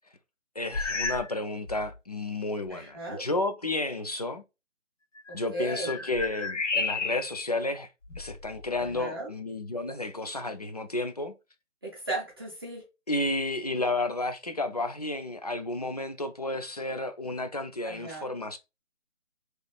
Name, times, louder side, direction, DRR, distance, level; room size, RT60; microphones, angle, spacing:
voice 1, 0.6-4.4 5.3-7.9 8.2-11.3 13.1-18.6, left 2 dB, 35° left, 0.4 m, -32 dB
sound 1, 0.7-1.4 1.7-2.0 2.7-2.8 5.2-7.5 8.0-9.1, left 4 dB, 90° left, 0.8 m, -33 dB
voice 2, 2.7-3.2 5.3-6.1 8.8-9.3 11.8-12.8 17.8-18.2, right 2 dB, 20° right, 0.8 m, -36 dB
4.8 x 3.1 x 2.3 m
figure-of-eight pair, 150°, 36 cm